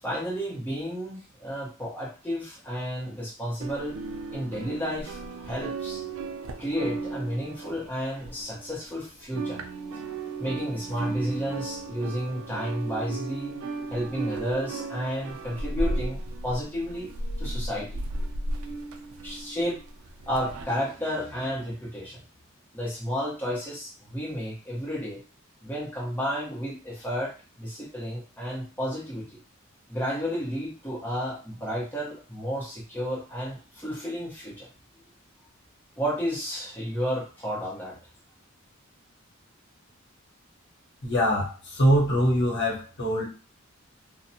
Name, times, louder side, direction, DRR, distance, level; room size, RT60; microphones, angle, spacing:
voice 1, 0.0-4.0 4.3-6.0 6.6-9.6 10.4-13.5 13.9-17.1 17.4-18.0 19.2-19.8 20.3-22.2 22.7-25.2 25.6-27.3 27.6-29.4 29.9-34.7 36.0-38.0, equal, 10° left, -6 dB, 0.9 m, -32 dB
sound 1, 3.6-8.9 9.2-20.6, right 2 dB, 85° right, 0.4 m, -35 dB
voice 2, 41.0-43.3, equal, 55° left, -4 dB, 0.9 m, -23 dB
2.6 x 2.1 x 2.7 m, 0.35 s
head